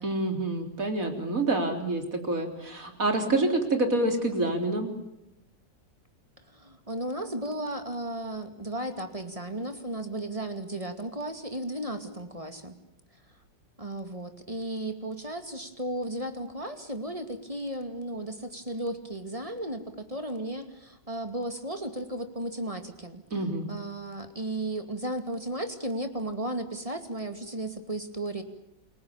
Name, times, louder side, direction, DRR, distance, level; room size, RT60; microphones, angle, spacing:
voice 1, 0.0-4.9 23.3-23.7, right 2 dB, 50° right, 5 dB, 4.3 m, -27 dB
voice 2, 6.5-12.8 13.8-19.8 20.1-28.4, right 1 dB, 20° right, 7 dB, 2.4 m, -35 dB
29.0 x 22.5 x 7.2 m, 0.84 s
omnidirectional pair, 1.9 m